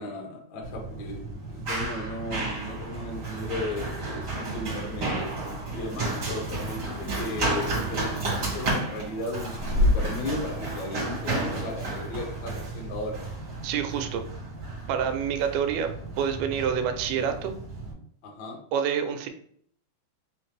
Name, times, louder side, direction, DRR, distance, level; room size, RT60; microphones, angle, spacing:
voice 1, 0.0-5.3 5.7-13.2 18.2-18.6, left 1 dB, 75° left, 1 dB, 1.0 m, -36 dB
Run, 0.6-17.9, right 1 dB, 40° right, 1.8 m, -31 dB
voice 2, 13.6-14.2 14.9-15.9 16.2-17.5 18.7-19.3, right 8 dB, 90° right, 7 dB, 2.1 m, -27 dB
4.6 x 3.2 x 3.2 m, 0.63 s
omnidirectional pair, 3.6 m